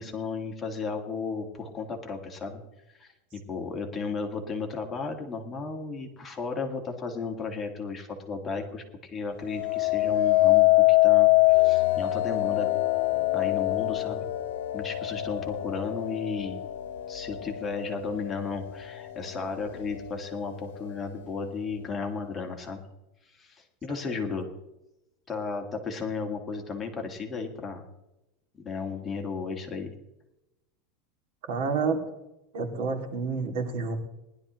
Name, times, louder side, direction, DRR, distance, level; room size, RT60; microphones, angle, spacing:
voice 1, 0.0-2.6 2.9-3.1 3.5-12.7 13.3-14.3 14.7-16.6 17.1-22.8 23.3-24.5 25.3-27.8 28.5-29.9, left 4 dB, 15° left, 1 dB, 1.8 m, -34 dB
sound 1, 9.5-18.6 19.2-19.6, left 19 dB, 85° left, 0.8 m, -24 dB
voice 2, 31.5-32.1 32.5-33.9, right 4 dB, 65° right, 3 dB, 2.5 m, -29 dB
19.5 x 11.5 x 3.1 m, 0.92 s
supercardioid pair, 150°, 0 cm